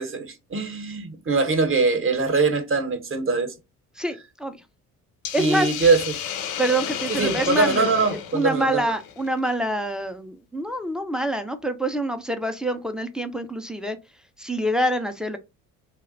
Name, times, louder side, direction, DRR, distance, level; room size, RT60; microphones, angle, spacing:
voice 1, 0.0-3.5 5.4-6.0 7.1-8.8, right 4 dB, 30° right, 0.8 m, -22 dB
voice 2, 4.0-4.6 5.3-5.7 6.6-14.0 14.4-15.4, right 1 dB, ahead, 0.4 m, -26 dB
Hiss, 5.2-9.5, left 9 dB, 60° left, 0.6 m, -32 dB
2.3 x 2.1 x 3.8 m
hypercardioid pair, 55°, 41 cm